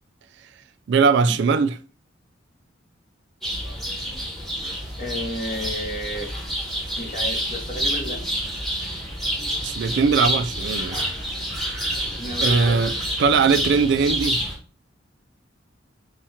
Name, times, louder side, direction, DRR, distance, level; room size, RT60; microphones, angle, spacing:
voice 1, 0.9-1.8 9.6-11.0 12.4-12.9 13.2-14.4, right 5 dB, 65° right, 0.3 m, -20 dB
sound 1, 3.4-14.6, equal, ahead, 1.1 m, -28 dB
voice 2, 5.0-6.3 7.0-8.2 12.2-13.1, left 1 dB, 45° left, 1.3 m, -32 dB
4.2 x 2.4 x 4.3 m
head